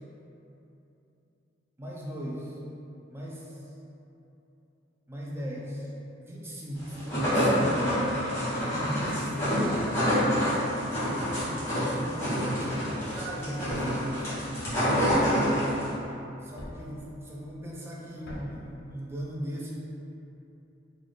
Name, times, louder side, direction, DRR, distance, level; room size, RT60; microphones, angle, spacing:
voice 1, 1.8-2.6 3.1-3.6 5.1-5.9 6.2-7.8 8.6-10.2 11.3-12.9 13.1-14.3 14.7-15.8 16.4-19.7, equal, 15° right, -4 dB, 0.5 m, -38 dB
sound 1, 6.8-15.9, equal, 15° left, 1.2 m, -27 dB
Thump thud, 13.7-14.0 15.1-15.4 16.6-17.0 18.2-18.7, equal, 60° left, 0.7 m, -43 dB
3.1 x 2.4 x 4.0 m, 2.9 s
head